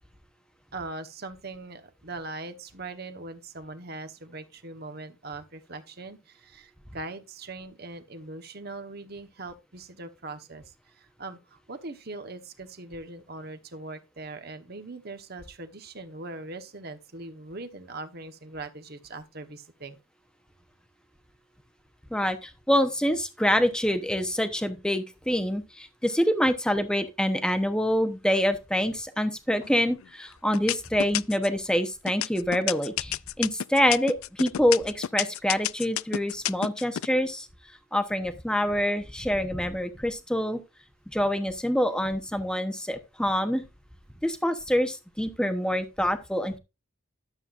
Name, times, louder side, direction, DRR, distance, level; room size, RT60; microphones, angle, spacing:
voice 1, 0.7-20.0, right 2 dB, 45° right, 1.1 m, -41 dB
voice 2, 22.1-37.5 37.9-40.6 41.1-43.6 44.2-46.6, equal, 5° left, 0.8 m, -26 dB
sound 1, 29.6-30.1 30.5-31.6 32.1-37.1, left 12 dB, 75° left, 0.3 m, -30 dB
12.0 x 7.7 x 2.5 m
head